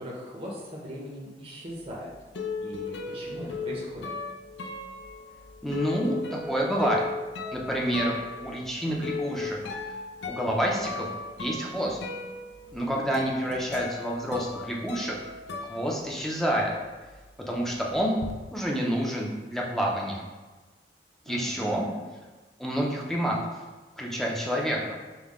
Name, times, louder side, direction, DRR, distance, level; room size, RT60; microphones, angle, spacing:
voice 1, 0.0-2.1 2.6-4.1 21.2-22.0, equal, 35° right, -4 dB, 0.7 m, -39 dB
sound 1, 1.8-16.6 16.9-18.3, left 4 dB, 80° left, 0.5 m, -37 dB
voice 2, 5.6-7.0 7.5-8.1 8.4-9.6 10.3-11.1 11.4-12.0 12.7-15.1 15.7-16.7 17.5-18.2 18.5-20.2 21.3-21.9 22.6-23.4 24.0-25.0, equal, ahead, -3 dB, 0.5 m, -28 dB
5.3 x 2.2 x 3.6 m, 1.3 s
head